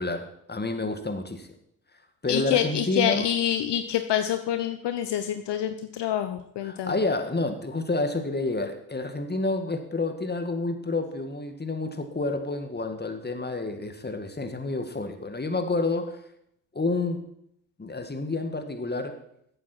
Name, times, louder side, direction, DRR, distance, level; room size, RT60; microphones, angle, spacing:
voice 1, 0.0-1.5 2.2-3.3 6.6-16.2 16.7-17.2 17.8-19.2, left 2 dB, 20° left, 6 dB, 2.0 m, -29 dB
voice 2, 2.3-7.0, left 10 dB, 60° left, 8 dB, 0.9 m, -27 dB
14.5 x 8.5 x 4.6 m, 0.74 s
hypercardioid pair, 50°, 47 cm